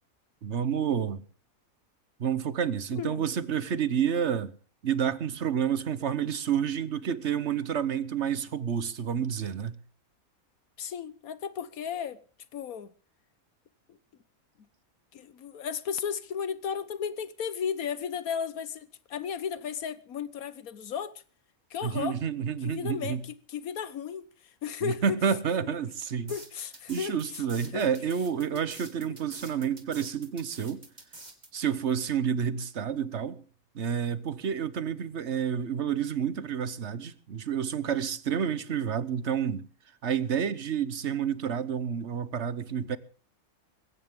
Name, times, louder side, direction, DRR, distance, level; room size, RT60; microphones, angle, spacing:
voice 1, 0.4-1.2 2.2-4.5 4.8-9.7 21.8-23.2 24.8-26.3 26.9-30.8 31.5-33.4 33.7-39.7 40.0-43.0, right 8 dB, 55° right, 1.3 m, -29 dB
voice 2, 2.9-3.2 10.8-12.2 12.5-12.9 13.9-14.0 15.1-21.2 21.7-22.2 22.6-25.0 25.7-25.8 26.3-27.4 27.7-27.9 28.5-28.6, left 7 dB, 85° left, 1.5 m, -35 dB
sound 1, 26.3-31.5, right 2 dB, 30° right, 2.6 m, -47 dB
20.5 x 16.5 x 3.7 m
omnidirectional pair, 1.5 m